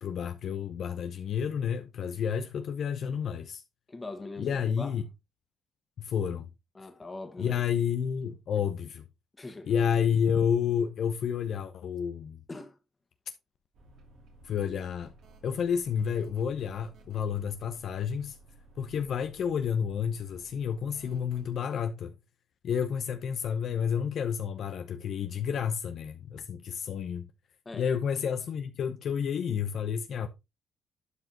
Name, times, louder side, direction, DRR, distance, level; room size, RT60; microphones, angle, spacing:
voice 1, 0.0-3.6 4.4-5.0 6.0-6.5 7.4-9.1 9.7-12.4 14.4-15.1 15.4-18.4 18.8-22.1 22.6-27.3 27.7-30.3, left 7 dB, 65° left, 0.8 m, -30 dB
voice 2, 3.9-4.9 6.7-7.6 9.4-9.9 12.5-12.8 27.6-27.9 30.2-30.3, left 2 dB, 25° left, 1.6 m, -42 dB
sound 1, 13.7-21.5, right 2 dB, 70° right, 2.8 m, -56 dB
11.5 x 4.9 x 2.9 m
cardioid pair, 90°, 0 cm